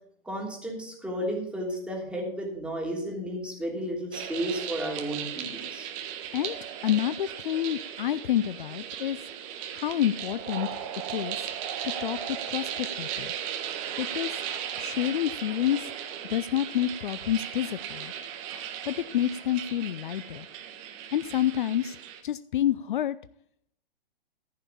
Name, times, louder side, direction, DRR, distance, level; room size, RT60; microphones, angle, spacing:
voice 1, 0.2-5.9, right 1 dB, 5° right, -2 dB, 3.0 m, -33 dB
sound 1, 4.1-22.2, right 9 dB, 35° right, 1.6 m, -37 dB
voice 2, 6.8-9.2 9.7-10.8 11.1-11.5 11.8-13.3 14.0-14.4 14.8-15.9 16.3-18.1 18.9-20.5 21.1-22.0 22.2-23.2, left 11 dB, 55° left, 17 dB, 0.5 m, -28 dB
14.5 x 5.6 x 7.0 m, 0.69 s
hypercardioid pair, 125°, 29 cm